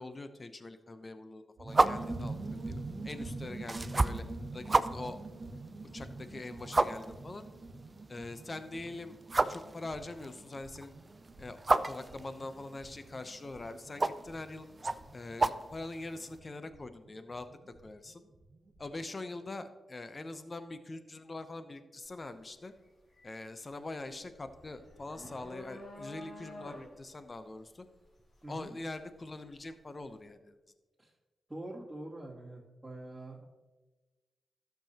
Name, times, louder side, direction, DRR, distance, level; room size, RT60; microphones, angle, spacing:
voice 1, 0.0-4.2 4.5-5.2 5.9-7.5 8.1-9.2 9.5-10.9 11.4-14.7 15.1-17.5 17.8-18.2 18.8-22.7 23.2-27.9 28.5-30.5, left 2 dB, 40° left, 10 dB, 0.8 m, -43 dB
sound 1, 1.6-17.9 18.1-18.2 18.4-18.8, right 2 dB, 75° right, 1.5 m, -45 dB
sound 2, 1.7-16.4, right 2 dB, 35° right, 0.4 m, -34 dB
sound 3, 22.0-22.3 22.7-29.7, left 1 dB, 55° left, 3.0 m, -50 dB
voice 2, 28.4-28.8 31.0-31.1 31.5-33.4, right 1 dB, 15° right, -8 dB, 2.5 m, -44 dB
12.5 x 6.9 x 3.0 m, 1.2 s
supercardioid pair, 45°, 0 cm